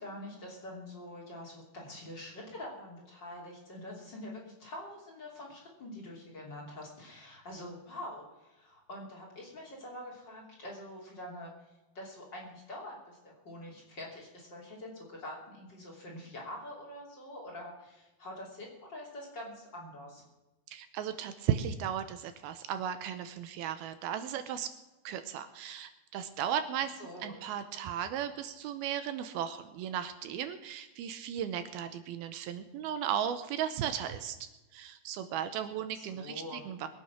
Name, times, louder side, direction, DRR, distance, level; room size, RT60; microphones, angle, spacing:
voice 1, 0.0-11.5 11.9-20.2 27.0-27.3 35.9-36.6, left 1 dB, 30° left, -3 dB, 3.0 m, -45 dB
voice 2, 20.7-24.7 25.0-27.0 27.2-34.4 34.7-36.9, right 9 dB, 80° right, 10 dB, 2.6 m, -35 dB
21.5 x 8.7 x 6.0 m, 1.1 s
omnidirectional pair, 4.6 m